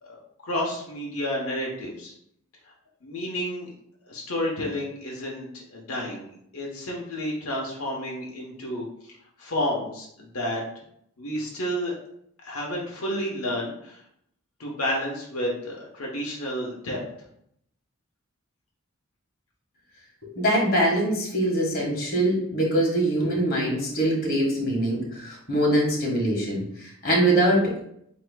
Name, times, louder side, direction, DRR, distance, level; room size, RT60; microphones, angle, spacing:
voice 1, 0.0-2.1 3.0-3.7 4.1-10.6 11.2-12.0 12.4-14.0 14.6-17.0, left 1 dB, 85° left, -2 dB, 1.0 m, -31 dB
voice 2, 20.4-27.8, right 1 dB, 45° left, -3 dB, 1.6 m, -23 dB
7.8 x 3.0 x 2.2 m, 0.72 s
head